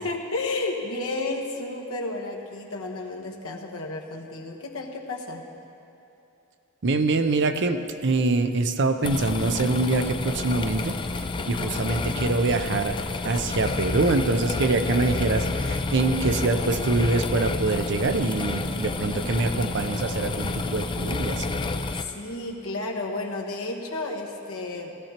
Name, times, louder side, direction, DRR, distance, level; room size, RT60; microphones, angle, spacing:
voice 1, 0.0-5.4 11.4-11.9 18.1-19.5 21.9-24.9, left 2 dB, 80° left, 0 dB, 1.3 m, -33 dB
voice 2, 6.8-11.0 11.5-13.0 13.2-21.5, right 3 dB, 55° right, 8 dB, 0.6 m, -24 dB
sound 1, 9.0-22.0, left 3 dB, 25° left, 0.4 m, -29 dB
17.5 x 13.5 x 2.9 m, 2.9 s
head